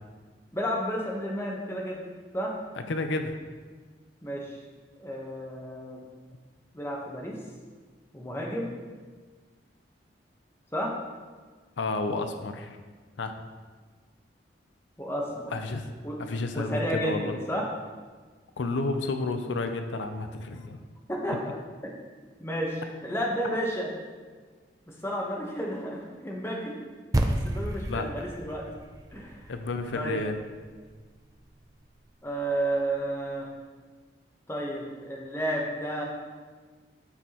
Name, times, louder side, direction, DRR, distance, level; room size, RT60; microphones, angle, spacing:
voice 1, 0.5-2.0 2.3-2.5 4.2-4.6 5.0-6.0 6.7-7.4 8.1-8.7 10.7-10.9 15.0-15.5 16.0-16.2 16.5-17.7 21.1-21.6 21.8-21.9 22.4-23.9 24.9-26.7 27.4-28.7 29.1-29.5 29.9-30.2 32.2-33.5 34.5-36.0, equal, 15° left, -2 dB, 1.0 m, -32 dB
voice 2, 2.9-3.3 11.8-12.8 13.2-13.3 15.5-15.9 16.2-17.3 18.6-20.8 27.9-28.1 29.5-30.4, left 3 dB, 85° left, 7 dB, 0.5 m, -31 dB
sound 1, 27.1-31.7, right 1 dB, 20° right, 0.4 m, -32 dB
9.5 x 6.2 x 2.9 m, 1.4 s
head